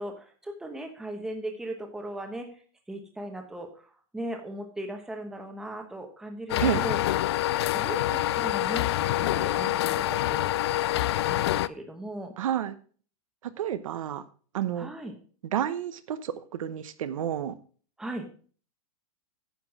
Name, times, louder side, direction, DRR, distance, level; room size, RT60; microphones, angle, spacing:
voice 1, 0.0-2.5 2.9-3.7 4.1-7.0 7.5-11.0 11.3-12.3 14.7-15.1 18.0-18.2, right 1 dB, 5° right, 3 dB, 1.1 m, -38 dB
sound 1, 6.5-11.7, left 14 dB, 45° left, 0.4 m, -26 dB
voice 2, 12.4-12.7 13.6-14.2 14.5-14.9 15.5-17.5, right 10 dB, 65° right, 12 dB, 0.9 m, -30 dB
9.7 x 6.0 x 6.0 m, 0.43 s
supercardioid pair, 170°, 18 cm